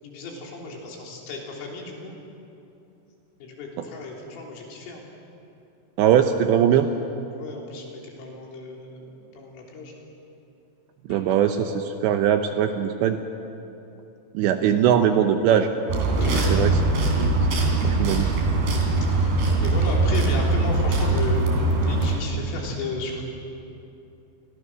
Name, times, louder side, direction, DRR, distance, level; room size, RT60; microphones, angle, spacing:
voice 1, 0.0-2.1 3.4-5.0 7.3-9.9 11.1-11.2 14.6-14.9 16.2-16.6 19.1-23.3, left 3 dB, 75° left, -1 dB, 6.1 m, -34 dB
voice 2, 6.0-6.9 11.1-13.2 14.3-15.7 16.5-16.7 17.2-17.3 17.8-18.3, right 9 dB, 75° right, 6 dB, 2.7 m, -20 dB
sound 1, 15.9-22.2, right 2 dB, 55° right, 5.0 m, -22 dB
28.5 x 25.0 x 6.2 m, 2.8 s
omnidirectional pair, 5.9 m